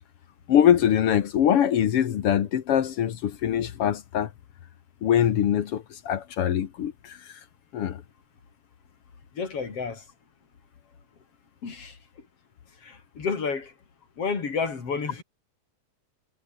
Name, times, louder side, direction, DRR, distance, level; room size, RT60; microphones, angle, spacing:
voice 1, 0.5-4.3 5.0-7.4 7.7-8.0, left 9 dB, 60° left, 1.6 m, -23 dB
voice 2, 9.3-10.0 11.6-12.0 12.8-13.7 14.2-15.2, left 5 dB, 40° left, 4.7 m, -30 dB
omnidirectional pair, 4.0 m